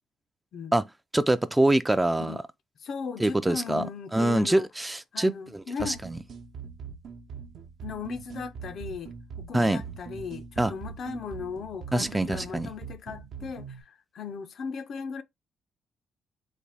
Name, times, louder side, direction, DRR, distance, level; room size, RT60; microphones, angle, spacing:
voice 1, 1.1-2.4 3.2-5.9 9.5-9.8 10.6-10.7 11.9-12.7, right 1 dB, 10° right, 0.3 m, -25 dB
voice 2, 2.8-4.7 5.1-6.0 7.8-15.2, left 6 dB, 60° left, 0.5 m, -37 dB
sound 1, 5.8-13.8, right 6 dB, 70° right, 0.7 m, -42 dB
4.1 x 2.2 x 3.3 m
cardioid pair, 90°, 0 cm